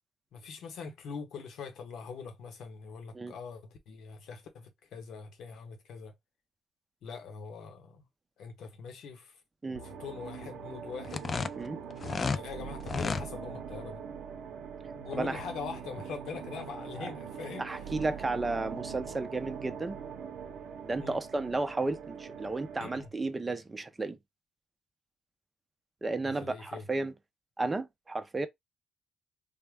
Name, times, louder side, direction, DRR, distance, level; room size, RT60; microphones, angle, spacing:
voice 1, 0.3-6.1 7.0-8.0 8.4-9.3 9.7-11.3 12.3-14.0 14.9-17.6 21.0-21.2 22.8-23.1 26.2-26.8, left 5 dB, 75° left, 1.0 m, -43 dB
sound 1, 9.7-23.1, right 7 dB, 80° right, 0.7 m, -42 dB
sound 2, 11.0-12.4 12.8-13.3, left 5 dB, 40° left, 0.3 m, -32 dB
voice 2, 17.6-20.0 20.8-24.2 26.0-27.1 27.6-28.5, right 3 dB, 20° right, 0.6 m, -33 dB
3.6 x 2.1 x 3.4 m
cardioid pair, 90°, 0 cm